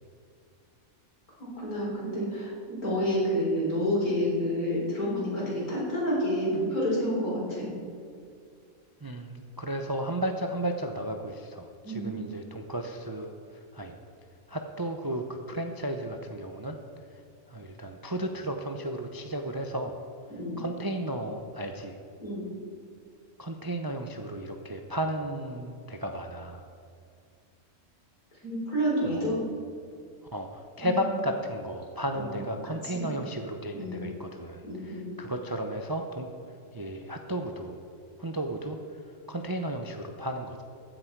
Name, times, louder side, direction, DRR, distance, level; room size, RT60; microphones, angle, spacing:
voice 1, 1.4-7.7 11.8-12.3 20.4-20.6 22.2-22.5 28.4-29.4 30.8-31.0 32.1-32.2 32.9-33.1 33.7-34.1 34.6-35.1, equal, 90° left, -6 dB, 4.6 m, -29 dB
voice 2, 9.0-13.3 13.7-13.9 14.5-16.8 17.5-19.9 20.6-22.0 23.4-26.6 29.1-29.3 30.3-36.3 36.7-37.8 38.2-38.8 39.3-40.6, right 1 dB, 35° right, 4 dB, 0.3 m, -34 dB
14.5 x 10.0 x 4.6 m, 2.4 s
omnidirectional pair, 1.5 m